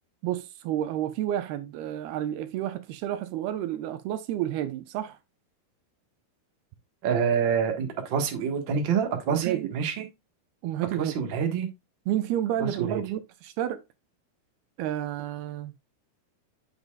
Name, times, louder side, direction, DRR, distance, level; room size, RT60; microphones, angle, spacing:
voice 1, 0.2-5.2 9.3-9.7 10.6-11.2 12.1-13.8 14.8-15.7, right 12 dB, 80° right, 2.7 m, -30 dB
voice 2, 7.0-10.0 11.0-11.7 12.6-13.0, right 7 dB, 60° right, 1.2 m, -27 dB
8.0 x 7.0 x 2.3 m
omnidirectional pair, 4.7 m